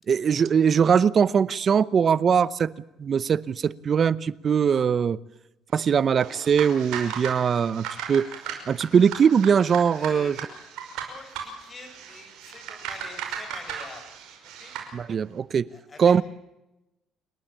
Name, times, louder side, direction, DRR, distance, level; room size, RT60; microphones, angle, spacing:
voice 1, 0.1-2.7 3.0-5.2 5.7-8.3 8.7-10.3 14.9-15.7 16.0-16.2, right 7 dB, 45° right, 20 dB, 0.8 m, -21 dB
sound 1, 6.2-14.9, right 8 dB, 80° right, 5.5 m, -37 dB
voice 2, 9.9-10.7 11.1-14.7 15.7-16.2, left 3 dB, 30° left, 6 dB, 7.3 m, -46 dB
28.5 x 12.0 x 8.7 m, 0.97 s
supercardioid pair, 85°, 0 cm